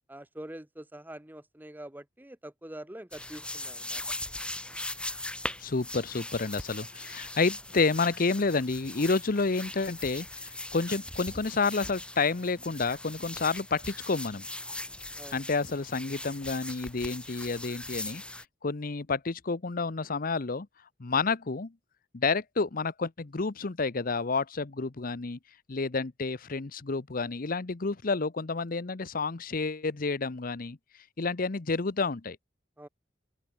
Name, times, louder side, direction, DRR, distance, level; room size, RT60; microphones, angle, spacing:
voice 1, 0.1-4.0 15.2-15.4 32.8-32.9, right 1 dB, 10° right, 1.1 m, -45 dB
sound 1, 3.1-18.4, left 1 dB, 5° left, 3.1 m, -40 dB
voice 2, 5.6-14.5 15.3-20.7 21.0-21.7 22.1-25.4 25.7-30.8 31.2-32.4, left 4 dB, 50° left, 0.8 m, -30 dB
open air
head